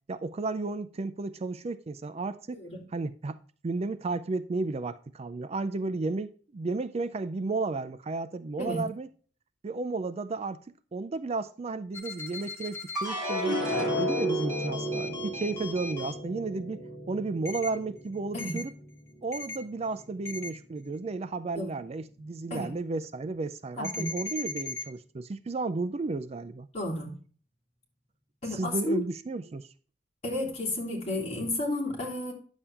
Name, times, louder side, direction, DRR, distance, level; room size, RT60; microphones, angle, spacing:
voice 1, 0.1-2.6 2.9-9.1 9.6-10.6 10.9-13.6 14.0-18.7 19.2-26.7 28.5-29.7, right 3 dB, 35° right, 0.4 m, -33 dB
voice 2, 2.5-2.8 8.6-8.8 18.3-18.6 21.5-21.7 22.5-22.7 23.8-24.1 26.7-27.1 28.4-29.0 30.2-32.3, left 1 dB, 40° left, 3.3 m, -32 dB
sound 1, 11.9-16.1 17.4-17.7 18.4-18.6 19.3-19.6 20.2-20.5 23.8-24.8, left 3 dB, 15° left, 1.5 m, -38 dB
sound 2, 12.9-19.4 19.8-20.5, equal, 5° right, 4.7 m, -33 dB
9.8 x 7.3 x 3.4 m
head